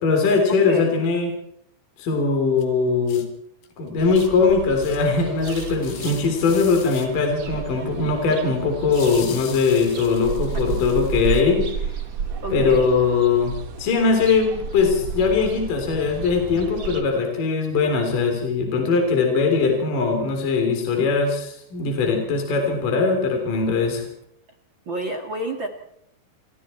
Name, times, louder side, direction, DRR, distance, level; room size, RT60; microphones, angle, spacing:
voice 1, 0.0-1.3 2.0-3.2 3.8-11.9 12.5-13.5 13.8-24.1, left 4 dB, 45° left, 2 dB, 4.8 m, -21 dB
sound 1, 2.6-2.7 3.1-3.3 3.6-3.7 4.2-4.3 4.8-5.1 5.4-7.1 8.9-11.4, left 9 dB, 90° left, 4.9 m, -40 dB
sound 2, 4.0-17.0, right 6 dB, 75° right, 1.2 m, -32 dB
voice 2, 12.4-12.9 24.8-25.7, right 1 dB, 60° right, 5 dB, 1.2 m, -29 dB
28.5 x 22.5 x 4.5 m, 0.71 s
omnidirectional pair, 5.5 m